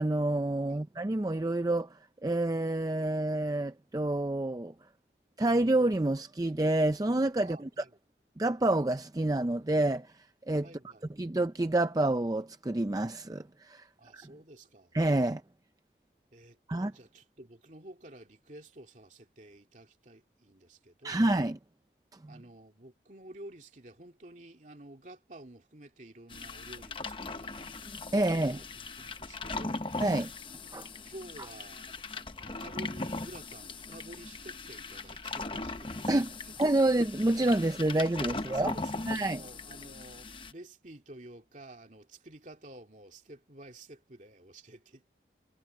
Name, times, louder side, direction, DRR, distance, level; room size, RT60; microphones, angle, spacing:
voice 1, 0.0-4.7 5.4-7.8 8.4-10.1 10.5-10.7 11.2-13.9 14.1-14.2 14.9-15.4 16.7-16.9 21.0-21.6 22.2-22.3 28.1-28.6 30.0-30.3 30.7-30.9 36.1-38.7 39.1-39.4, right 2 dB, 20° right, 0.5 m, -28 dB
voice 2, 7.4-8.0 10.6-11.1 14.0-15.0 16.3-21.3 22.3-27.7 28.2-29.9 31.1-36.1 36.4-36.6 37.9-38.1 38.3-45.1, right 1 dB, 45° right, 2.7 m, -51 dB
sound 1, 26.3-40.5, left 3 dB, 30° left, 0.9 m, -39 dB
head